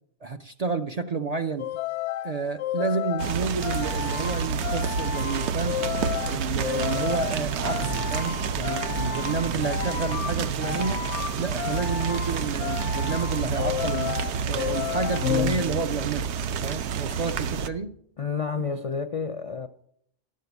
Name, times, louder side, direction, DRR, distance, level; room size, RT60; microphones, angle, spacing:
voice 1, 0.2-1.7 2.2-5.8 6.2-11.0 11.4-14.1 14.5-16.3 16.6-17.9, right 4 dB, 55° right, 0.4 m, -30 dB
sound 1, 1.6-16.1, left 10 dB, 85° left, 0.9 m, -32 dB
sound 2, 3.2-17.7, right 6 dB, 80° right, 0.9 m, -29 dB
voice 2, 18.2-19.7, left 5 dB, 55° left, 0.3 m, -30 dB
12.0 x 6.5 x 6.8 m
omnidirectional pair, 1.2 m